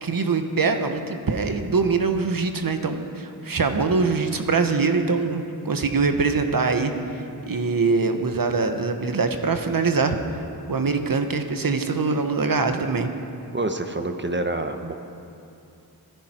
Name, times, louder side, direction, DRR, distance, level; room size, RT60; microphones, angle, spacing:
voice 1, 0.0-10.2 10.7-13.1, right 4 dB, 65° right, 6 dB, 1.3 m, -23 dB
voice 2, 13.5-14.9, right 2 dB, 30° right, 6 dB, 1.2 m, -27 dB
25.5 x 10.5 x 4.5 m, 2.7 s
cardioid pair, 55°, 37 cm